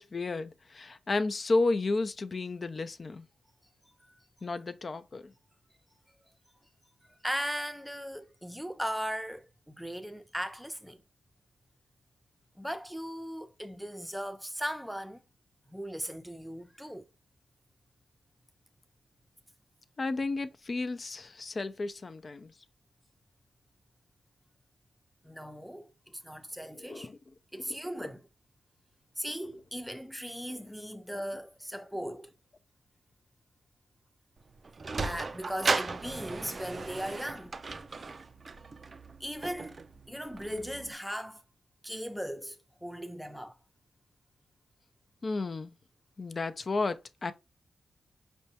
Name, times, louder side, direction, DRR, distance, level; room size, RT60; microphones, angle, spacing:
voice 1, 0.0-3.3 4.4-5.3 20.0-22.5 26.7-27.2 45.2-45.7 46.2-47.3, left 3 dB, 45° left, 0.5 m, -32 dB
voice 2, 7.2-11.0 12.6-15.2 15.7-17.1 25.2-27.1 27.5-28.2 29.2-32.3 35.0-37.6 39.2-39.8 40.1-41.4 41.8-43.6, equal, ahead, 0.6 m, -38 dB
Sliding door, 34.4-40.9, right 4 dB, 50° right, 0.4 m, -36 dB
5.2 x 2.3 x 2.8 m
supercardioid pair, 50°, 0 cm